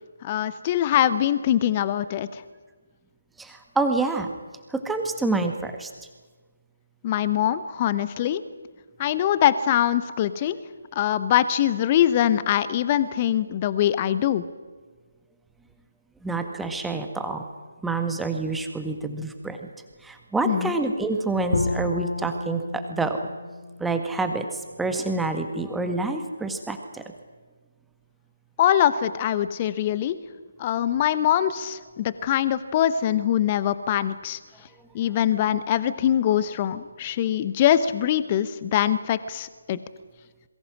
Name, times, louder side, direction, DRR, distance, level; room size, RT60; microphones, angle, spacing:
voice 1, 0.2-2.4 7.0-8.4 9.0-10.6 10.9-14.4 20.5-20.7 28.6-30.2 30.6-34.4 34.9-39.8, left 11 dB, 25° left, 15 dB, 0.9 m, -23 dB
voice 2, 3.4-4.3 4.7-5.9 16.2-17.4 17.8-19.7 20.0-23.2 23.8-27.0, right 3 dB, 5° right, 5 dB, 1.7 m, -27 dB
Bowed string instrument, 21.5-24.6, left 2 dB, 70° left, 1.8 m, -30 dB
26.5 x 22.5 x 6.2 m, 1.4 s
figure-of-eight pair, 145°, 0 cm